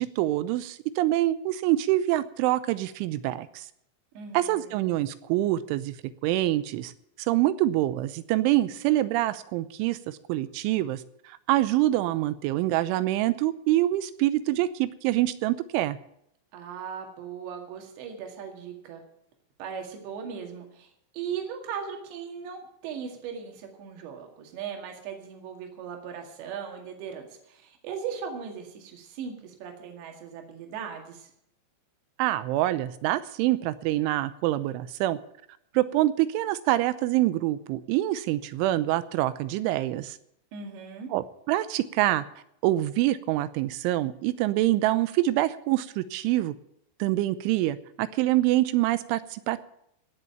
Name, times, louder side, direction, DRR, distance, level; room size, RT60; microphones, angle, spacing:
voice 1, 0.0-3.7 4.3-6.0 6.2-6.9 7.3-16.0 32.2-35.2 35.7-40.2 41.1-42.2 42.6-46.5 47.0-49.6, right 15 dB, 85° right, 14 dB, 3.2 m, -25 dB
voice 2, 4.2-4.7 16.5-19.0 19.6-31.3 40.5-41.1, right 7 dB, 70° right, 3 dB, 4.2 m, -38 dB
17.5 x 6.8 x 8.9 m, 0.74 s
omnidirectional pair, 5.4 m